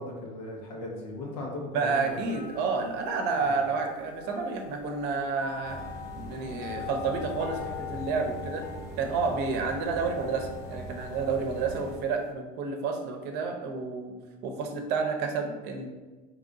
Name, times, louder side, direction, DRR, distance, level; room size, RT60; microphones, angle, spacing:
voice 1, 0.0-2.2 3.4-3.6, left 1 dB, 85° left, -2 dB, 1.2 m, -38 dB
voice 2, 1.7-5.8 6.1-8.6 9.0-14.1 14.4-15.9, right 4 dB, 50° right, 4 dB, 0.7 m, -30 dB
sound 1, 1.9-12.3, left 7 dB, 45° left, 0.6 m, -43 dB
sound 2, 5.6-12.0, right 2 dB, 15° right, 1.0 m, -42 dB
3.7 x 3.0 x 3.9 m, 1.2 s
supercardioid pair, 130°, 21 cm